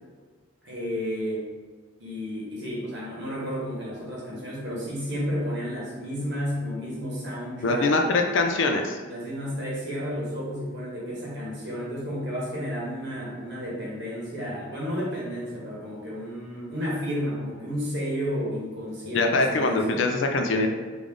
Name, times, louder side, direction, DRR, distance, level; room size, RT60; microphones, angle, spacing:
voice 1, 0.6-1.5 2.0-7.9 9.1-20.0, equal, 55° right, -5 dB, 1.0 m, -32 dB
voice 2, 7.6-9.0 19.1-20.7, left 3 dB, 65° left, 4 dB, 0.4 m, -23 dB
3.5 x 2.5 x 3.5 m, 1.4 s
head